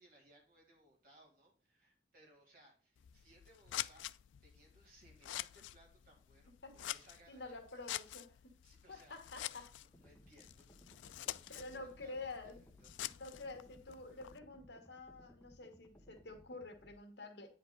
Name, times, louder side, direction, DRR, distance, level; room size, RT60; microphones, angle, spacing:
voice 1, 0.0-4.1 4.4-7.6 8.6-9.2 9.9-10.7 11.0-12.9, right 1 dB, 50° right, -1 dB, 3.3 m, -65 dB
Scissors, 3.0-14.4, left 14 dB, 90° left, 0.3 m, -47 dB
voice 2, 7.3-8.4 8.9-9.7 11.5-12.6 13.2-17.5, left 3 dB, 70° left, 5 dB, 1.7 m, -49 dB
sound 1, 9.9-16.9, equal, 15° left, 0.9 m, -63 dB
9.2 x 5.1 x 4.0 m, 0.41 s
head